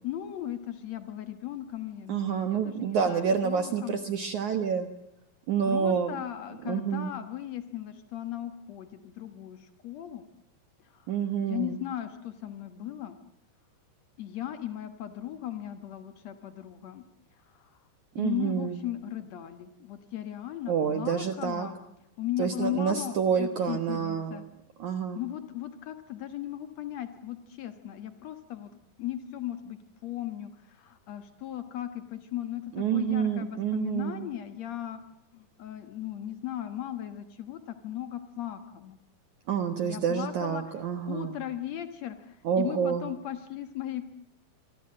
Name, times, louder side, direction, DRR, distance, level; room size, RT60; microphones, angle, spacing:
voice 1, 0.0-4.0 5.7-10.3 10.8-13.2 14.2-17.0 17.3-17.8 18.1-21.8 22.2-24.4 25.1-28.7 29.0-35.0 35.3-39.0 39.8-40.6 41.0-44.1, left 12 dB, 90° left, 9 dB, 1.5 m, -37 dB
voice 2, 2.1-4.9 5.5-6.2 6.7-7.1 11.1-11.8 18.2-18.8 20.7-21.7 22.4-24.4 24.8-25.2 32.8-34.3 39.5-41.4 42.4-43.1, right 7 dB, 70° right, 8 dB, 1.9 m, -28 dB
25.0 x 24.5 x 7.7 m, 0.86 s
omnidirectional pair, 5.2 m